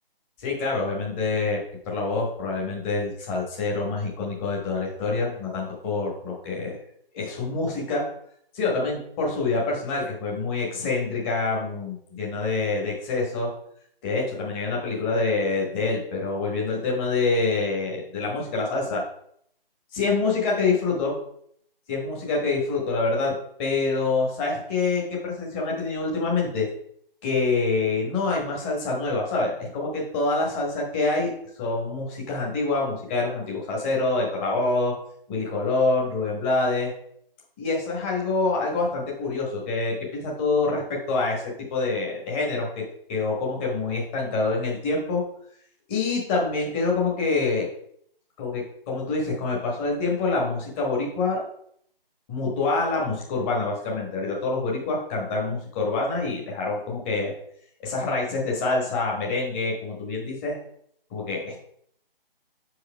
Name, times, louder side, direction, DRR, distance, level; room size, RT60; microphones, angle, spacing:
voice 1, 0.4-6.8 7.1-8.0 8.5-13.5 14.0-19.0 19.9-21.1 21.9-23.3 23.6-26.7 27.2-31.3 31.6-34.9 35.3-36.9 37.6-42.8 43.1-45.2 45.9-47.7 48.4-51.4 52.3-57.3 57.8-60.6 61.1-61.6, left 3 dB, 15° left, -3 dB, 1.2 m, -26 dB
6.7 x 4.8 x 4.7 m, 0.67 s
figure-of-eight pair, 150°, 29 cm